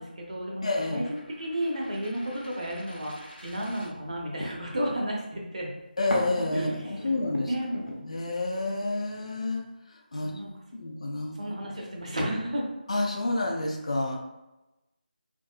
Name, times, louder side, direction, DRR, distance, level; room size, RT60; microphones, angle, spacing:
voice 1, 0.0-5.7 6.5-6.7 7.5-7.8 10.2-10.5 11.4-12.7, equal, 45° right, -1 dB, 0.6 m, -32 dB
voice 2, 0.6-1.1 6.0-7.5 8.0-10.3 10.7-11.6 12.9-14.2, left 2 dB, 40° left, 1 dB, 0.4 m, -29 dB
sound 1, 0.8-4.6 6.1-8.0, equal, 85° left, 0.9 m, -39 dB
3.5 x 2.6 x 2.2 m, 0.99 s
figure-of-eight pair, 160°, 5 cm